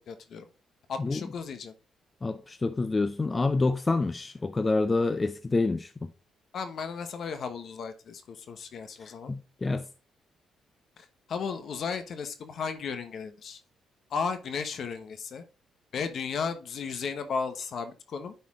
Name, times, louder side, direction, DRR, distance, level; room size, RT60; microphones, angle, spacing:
voice 1, 0.1-0.5 0.9-1.7 6.5-9.3 11.0-13.6 14.1-15.4 15.9-18.3, left 5 dB, 60° left, 1.1 m, -35 dB
voice 2, 2.2-5.9 9.0-9.8, left 3 dB, 25° left, 0.5 m, -27 dB
9.6 x 4.3 x 3.7 m
cardioid pair, 90°, 0 cm